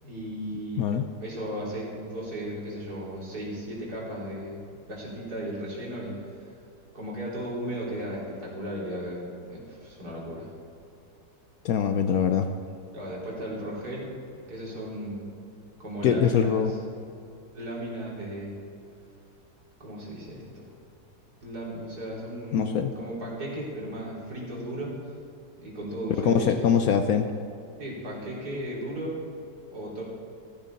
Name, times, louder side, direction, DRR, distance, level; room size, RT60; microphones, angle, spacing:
voice 1, 0.0-0.9 1.2-4.6 4.9-6.5 6.9-10.5 12.9-14.1 14.5-15.3 15.8-16.8 17.5-18.6 19.8-20.7 21.4-24.9 25.6-26.7 27.8-29.2 29.7-30.0, right 1 dB, 60° right, -5 dB, 4.0 m, -35 dB
voice 2, 11.6-12.5 16.0-16.7 22.5-22.9 26.2-27.3, left 7 dB, 65° left, 7 dB, 1.0 m, -23 dB
16.0 x 13.5 x 4.1 m, 2.6 s
omnidirectional pair, 1.9 m